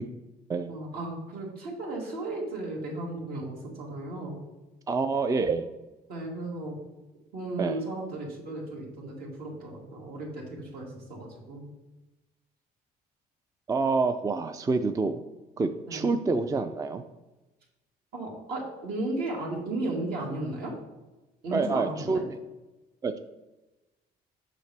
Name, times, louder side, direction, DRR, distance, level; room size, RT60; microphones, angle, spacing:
voice 1, 0.7-4.4 6.1-6.8 7.3-11.7 15.9-16.1 18.1-20.7 21.4-22.2, right 2 dB, 65° right, -2 dB, 2.3 m, -35 dB
voice 2, 4.9-5.7 7.6-7.8 13.7-15.2 15.6-17.0 21.5-22.2 23.0-23.2, right 4 dB, 20° right, 8 dB, 0.4 m, -27 dB
7.6 x 5.7 x 3.4 m, 1.1 s
cardioid pair, 110°, 17 cm